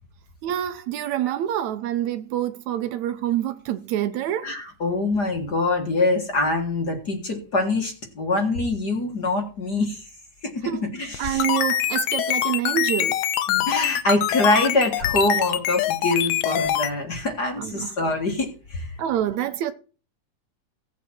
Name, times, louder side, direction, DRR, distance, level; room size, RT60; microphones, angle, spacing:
voice 1, 0.4-4.5 10.6-10.9 11.2-13.2 17.6-17.9 19.0-19.7, right 12 dB, 75° right, 2.0 m, -26 dB
voice 2, 4.4-10.1 10.6-11.6 13.5-18.9, left 2 dB, 40° left, 1.9 m, -24 dB
sound 1, 11.1-16.9, left 12 dB, 90° left, 2.3 m, -24 dB
16.5 x 8.4 x 4.5 m
omnidirectional pair, 3.5 m